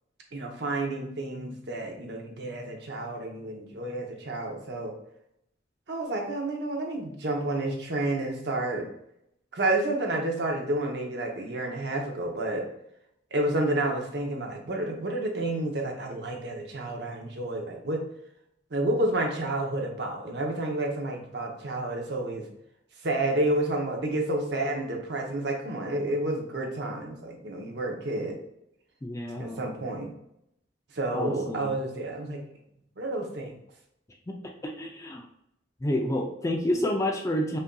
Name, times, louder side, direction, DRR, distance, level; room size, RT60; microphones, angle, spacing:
voice 1, 0.3-4.9 5.9-8.9 9.5-12.7 13.3-18.0 18.7-22.4 23.0-28.4 29.4-30.1 30.9-32.4 33.0-33.6, right 2 dB, 60° right, 1 dB, 0.7 m, -30 dB
voice 2, 29.0-29.6 31.1-31.7 34.3-34.4 34.6-35.2 35.8-37.6, left 1 dB, 15° left, 2 dB, 0.3 m, -29 dB
5.3 x 2.6 x 2.2 m, 0.76 s
head